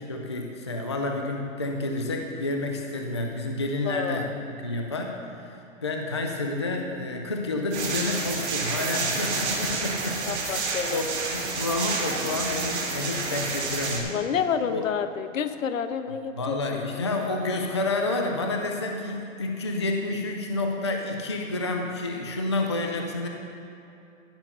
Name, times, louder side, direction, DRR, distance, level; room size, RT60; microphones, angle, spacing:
voice 1, 0.0-14.2 14.7-14.8 16.4-23.3, left 2 dB, 25° left, 2 dB, 0.3 m, -29 dB
voice 2, 3.8-4.3 10.2-11.0 14.1-16.6 16.9-17.0, left 7 dB, 80° left, 10 dB, 1.0 m, -29 dB
sound 1, 7.7-14.0, right 4 dB, 55° right, 2.6 m, -29 dB
14.5 x 7.2 x 5.5 m, 2.8 s
hypercardioid pair, 170°, 39 cm